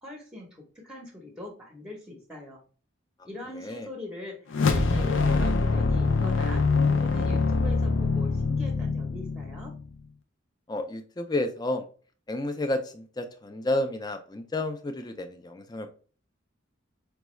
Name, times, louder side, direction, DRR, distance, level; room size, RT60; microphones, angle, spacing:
voice 1, 0.0-2.6 3.2-9.7, left 2 dB, 5° right, 1 dB, 0.8 m, -42 dB
voice 2, 3.5-3.9 7.3-7.4 10.7-11.8 12.3-15.9, left 1 dB, 20° left, 7 dB, 0.4 m, -31 dB
sound 1, 4.5-9.9, left 4 dB, 70° left, 0.5 m, -24 dB
5.1 x 2.3 x 3.1 m, 0.39 s
head